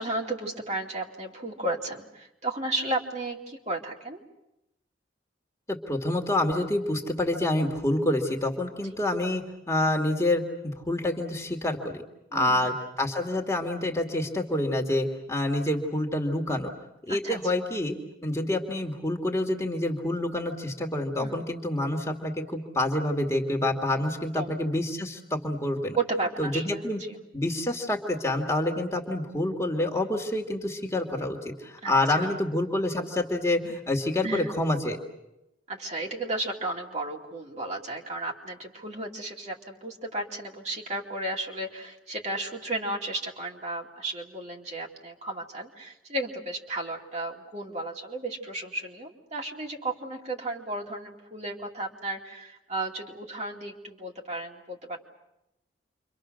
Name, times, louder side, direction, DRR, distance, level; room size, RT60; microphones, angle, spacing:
voice 1, 0.0-4.2 8.8-8.9 12.3-12.7 17.1-17.6 21.2-21.4 23.9-24.0 24.3-24.6 25.9-27.2 31.8-32.4 34.2-34.5 35.7-55.0, right 2 dB, 35° right, 0 dB, 2.6 m, -34 dB
voice 2, 5.7-12.0 12.3-16.7 17.1-17.9 18.2-26.0 26.4-27.0 27.3-35.0, left 1 dB, 15° left, 1 dB, 2.2 m, -27 dB
29.0 x 25.0 x 6.4 m, 0.90 s
head